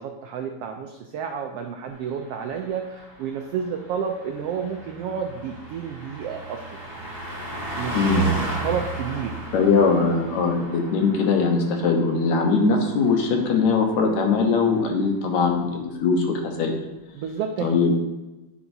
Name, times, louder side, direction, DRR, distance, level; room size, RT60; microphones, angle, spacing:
voice 1, 0.0-6.6 7.7-8.4 8.6-9.5 17.1-17.6, right 7 dB, 80° right, 4 dB, 1.3 m, -30 dB
Car passing by, 2.0-13.9 14.2-14.5, right 3 dB, 25° right, 1.7 m, -34 dB
voice 2, 7.9-8.3 9.5-16.7 17.6-18.0, left 4 dB, 75° left, 2 dB, 2.3 m, -21 dB
8.8 x 8.7 x 2.7 m, 1.1 s
omnidirectional pair, 3.3 m